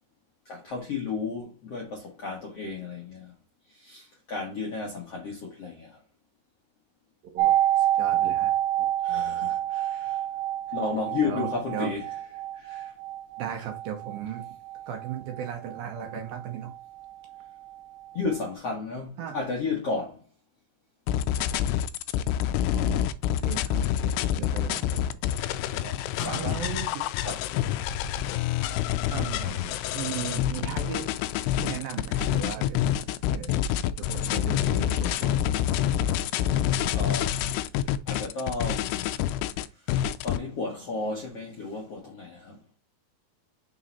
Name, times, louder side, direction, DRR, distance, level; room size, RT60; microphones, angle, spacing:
voice 1, 0.4-3.3 3.7-6.0 9.0-10.2 10.7-12.1 12.6-12.9 18.1-20.2 25.6-26.0 26.2-26.7 27.2-27.4 36.9-37.6 38.1-39.1 39.9-40.0 40.2-42.6, left 4 dB, 60° left, 1.6 m, -33 dB
voice 2, 7.3-8.5 9.9-10.0 11.2-11.9 12.5-12.6 13.4-14.4 14.9-16.7 19.2-19.4 22.7-25.2 26.2-27.0 29.1-31.2 31.6-32.8 33.3-33.6 34.0-35.4, right 9 dB, 70° right, 2.4 m, -37 dB
sound 1, 7.4-17.1 17.4-17.5, right 13 dB, 85° right, 3.0 m, -28 dB
sound 2, 21.1-40.4, left 11 dB, 85° left, 2.5 m, -27 dB
6.3 x 3.8 x 4.2 m
omnidirectional pair, 4.8 m